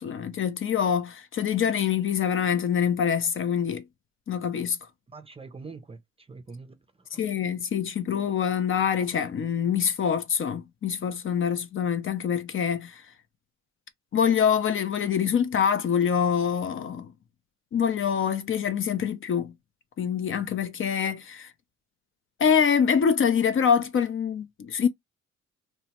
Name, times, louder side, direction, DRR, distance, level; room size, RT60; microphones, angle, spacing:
voice 1, 0.0-3.8 4.3-4.8 7.2-13.1 14.1-17.1 17.7-19.5 20.0-21.5 22.4-24.9, left 7 dB, 45° left, 0.5 m, -25 dB
voice 2, 5.1-7.3, right 4 dB, 20° right, 0.5 m, -45 dB
2.7 x 2.1 x 2.8 m
cardioid pair, 90°, 30 cm